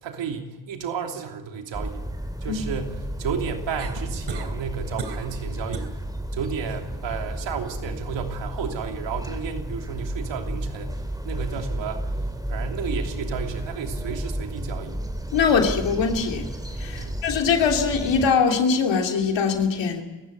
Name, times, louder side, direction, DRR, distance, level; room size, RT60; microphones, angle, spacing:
voice 1, 0.0-2.0 2.4-5.9 6.3-11.0 11.2-12.1 12.5-15.0 17.0-17.2, right 6 dB, 85° right, 4 dB, 3.0 m, -32 dB
sound 1, 1.7-18.3, right 1 dB, 10° right, 3.3 m, -32 dB
sound 2, 3.8-4.5 5.0-5.3 5.7-6.0 6.4-6.8 8.6-8.7, right 5 dB, 70° right, 3.4 m, -35 dB
voice 2, 15.3-16.5 16.8-20.0, left 5 dB, 80° left, 3 dB, 2.9 m, -22 dB
27.5 x 16.0 x 9.3 m, 1.2 s
supercardioid pair, 50°, 43 cm